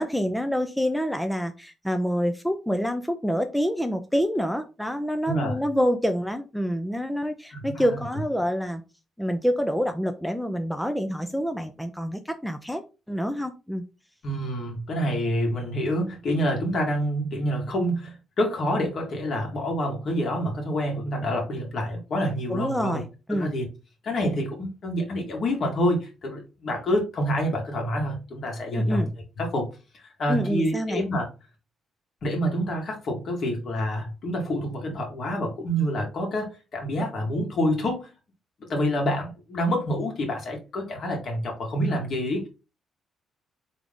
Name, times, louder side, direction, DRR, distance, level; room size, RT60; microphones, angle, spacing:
voice 1, 0.0-8.8 9.2-12.8 13.1-13.8 22.5-23.5 28.7-29.1 30.3-31.0, equal, ahead, 7 dB, 0.5 m, -27 dB
voice 2, 7.5-8.0 14.2-23.0 23.3-23.7 24.0-29.0 29.4-31.3 32.2-38.1 38.7-42.5, equal, 55° left, 1 dB, 1.9 m, -27 dB
3.8 x 3.5 x 3.6 m, 0.30 s
cardioid pair, 90°, 0 cm